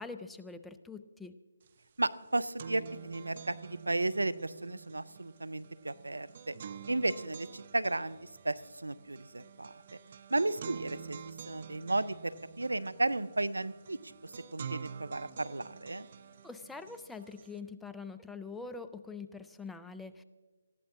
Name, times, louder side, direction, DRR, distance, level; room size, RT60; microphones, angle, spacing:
voice 1, 0.0-1.4 16.4-20.2, left 4 dB, 5° left, 9 dB, 0.5 m, -44 dB
sound 1, 1.7-1.8 2.1-17.6, right 7 dB, 40° right, 0.8 m, -48 dB
voice 2, 2.0-6.5 6.9-10.0 10.3-11.2 11.4-14.0 14.2-16.1, right 2 dB, 85° right, 16 dB, 0.6 m, -34 dB
19.5 x 15.0 x 3.8 m, 1.4 s
figure-of-eight pair, 150°, 0 cm